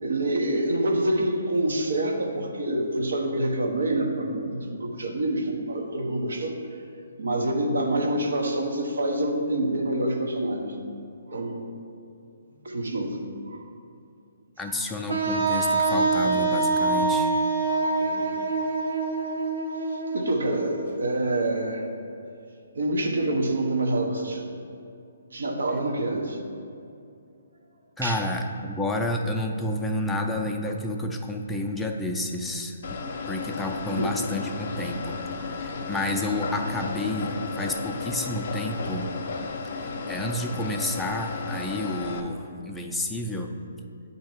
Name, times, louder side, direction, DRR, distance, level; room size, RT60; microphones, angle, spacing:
voice 1, 0.0-6.6 7.2-10.8 11.3-11.6 12.6-13.2 13.5-13.7 18.0-18.3 19.2-19.3 20.1-21.8 22.7-24.5 25.3-26.4 28.0-28.2 33.9-34.2, right 1 dB, 85° right, 2 dB, 0.9 m, -26 dB
voice 2, 14.6-17.3 28.0-32.8 33.3-35.1 35.4-39.1 39.6-43.5, left 1 dB, 5° left, 1 dB, 0.4 m, -30 dB
Wind instrument woodwind instrument, 15.1-20.9, right 3 dB, 60° right, 0.7 m, -25 dB
sound 1, 32.8-42.2, left 4 dB, 55° left, 0.6 m, -34 dB
8.3 x 2.8 x 4.6 m, 2.5 s
hypercardioid pair, 155°, 0 cm